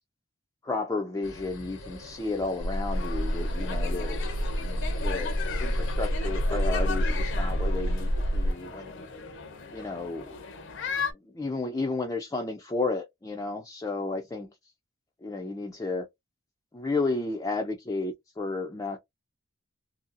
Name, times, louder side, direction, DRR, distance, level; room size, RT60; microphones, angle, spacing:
voice 1, 0.6-4.3 4.6-9.0 9.7-10.4 11.3-14.5 15.2-16.1 16.7-19.0, left 3 dB, 15° left, 0.4 m, -32 dB
sound 1, 1.2-8.5, left 2 dB, 90° left, 0.9 m, -43 dB
sound 2, 2.6-8.5, equal, 65° right, 0.5 m, -28 dB
sound 3, 2.9-11.1, left 5 dB, 65° left, 0.6 m, -37 dB
2.7 x 2.6 x 2.5 m
head